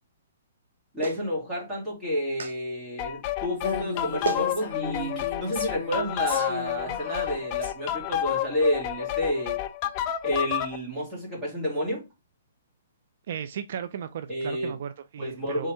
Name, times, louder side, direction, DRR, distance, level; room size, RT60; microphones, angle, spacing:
voice 1, 0.9-9.6 10.2-12.0 14.3-14.7 15.2-15.7, equal, 10° right, 2.4 m, -30 dB
Clapping, 1.0-1.2 2.4-2.6 3.8-3.9 4.2-4.5 5.6-5.7, right 6 dB, 80° right, 0.8 m, -31 dB
sound 1, 3.0-10.8, left 12 dB, 30° left, 0.4 m, -30 dB
Female speech woman speaking, 3.6-7.7, left 4 dB, 5° left, 2.5 m, -36 dB
voice 2, 13.3-15.7, right 8 dB, 55° right, 0.4 m, -35 dB
4.3 x 3.6 x 3.4 m
hypercardioid pair, 155°, 0 cm